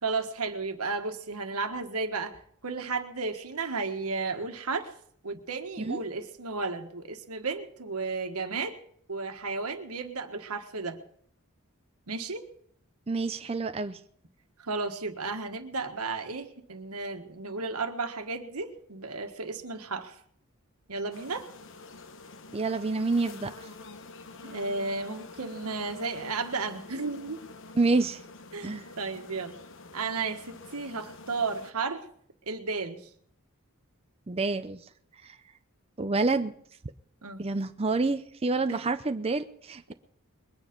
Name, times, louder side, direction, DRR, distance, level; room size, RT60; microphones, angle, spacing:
voice 1, 0.0-4.9 5.2-8.8 9.1-11.0 12.1-12.5 14.6-20.2 20.9-21.5 24.4-27.4 28.5-29.5 29.9-32.0 32.5-33.0 37.2-37.4 38.7-38.9, right 4 dB, 85° right, 6 dB, 1.6 m, -33 dB
voice 2, 13.1-14.0 22.5-23.7 27.7-28.2 28.6-28.8 34.3-34.8 35.2-35.4 36.0-36.5 37.4-39.9, right 3 dB, 25° right, 9 dB, 0.5 m, -28 dB
sound 1, 21.1-31.7, left 3 dB, 60° left, 1.0 m, -47 dB
22.0 x 9.7 x 5.3 m, 0.64 s
head